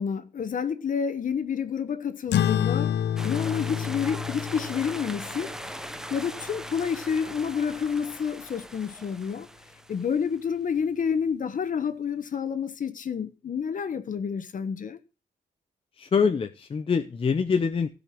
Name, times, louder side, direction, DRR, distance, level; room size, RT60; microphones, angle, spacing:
voice 1, 0.0-3.0 3.2-5.5 6.1-9.5 9.9-15.0, left 7 dB, 50° left, 1.3 m, -29 dB
sound 1, 2.3-7.2, left 10 dB, 80° left, 0.6 m, -29 dB
sound 2, 3.2-10.4, right 1 dB, 5° right, 0.7 m, -40 dB
voice 2, 16.0-17.9, left 5 dB, 30° left, 0.7 m, -24 dB
16.0 x 5.3 x 6.0 m
wide cardioid pair, 135°, 17 cm